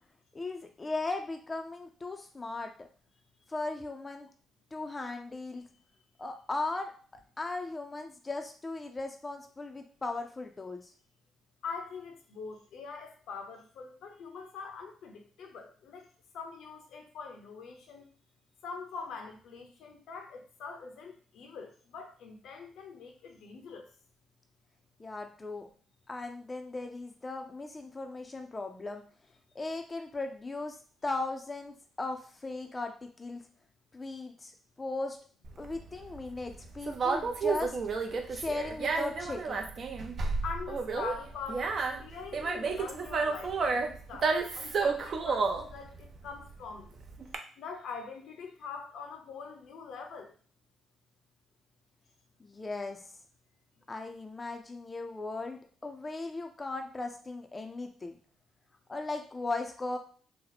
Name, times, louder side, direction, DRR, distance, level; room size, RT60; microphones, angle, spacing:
voice 1, 0.3-2.9 3.5-4.3 4.7-5.7 6.2-6.9 7.4-10.9 25.0-25.7 26.1-29.0 29.5-30.8 31.0-33.4 33.9-34.5 34.8-35.2 35.6-37.8 38.3-39.6 52.4-53.0 53.9-58.1 58.9-60.0, left 3 dB, 25° left, 4 dB, 0.4 m, -37 dB
voice 2, 11.6-16.1 16.3-18.1 18.6-23.9 40.4-43.8 44.1-46.9 47.6-50.3, left 5 dB, 75° left, 3 dB, 0.7 m, -43 dB
Conversation, 35.4-47.4, right 4 dB, 50° right, 0.5 m, -32 dB
2.9 x 2.0 x 4.0 m, 0.43 s
cardioid pair, 90°, 0 cm